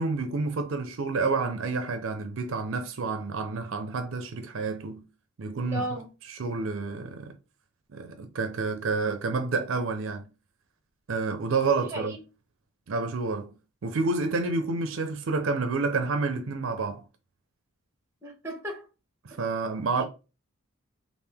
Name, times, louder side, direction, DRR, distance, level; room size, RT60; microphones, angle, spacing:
voice 1, 0.0-5.0 5.4-5.9 6.3-7.3 7.9-10.3 11.1-12.2 12.9-13.5 13.8-17.0 19.2-20.0, right 4 dB, 65° right, 0.5 m, -29 dB
voice 2, 5.7-6.1 11.9-12.2 18.2-18.9, right 1 dB, 10° right, 1.0 m, -34 dB
3.5 x 2.5 x 3.4 m
head